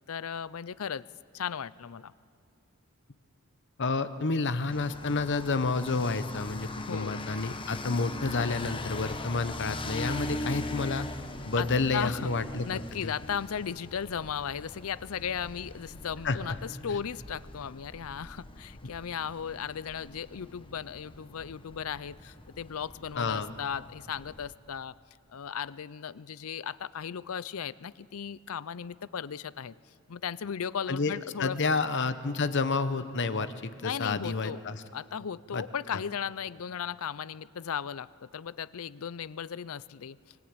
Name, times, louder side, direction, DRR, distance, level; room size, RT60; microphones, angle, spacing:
voice 1, 0.1-1.0 1.3-2.1 6.9-7.2 11.6-11.7 11.9-12.3 12.6-24.9 25.3-29.7 30.1-31.7 33.8-34.6 34.9-40.4, left 7 dB, 75° left, 19 dB, 0.5 m, -36 dB
voice 2, 3.8-11.1 11.4-12.7 13.0-13.1 16.2-16.4 23.2-23.5 30.9-34.7 35.5-35.6 35.9-36.0, left 3 dB, 55° left, 11 dB, 0.9 m, -29 dB
sound 1, 4.7-24.5, left 2 dB, 25° left, 1.0 m, -41 dB
23.5 x 21.0 x 8.9 m, 2.3 s
head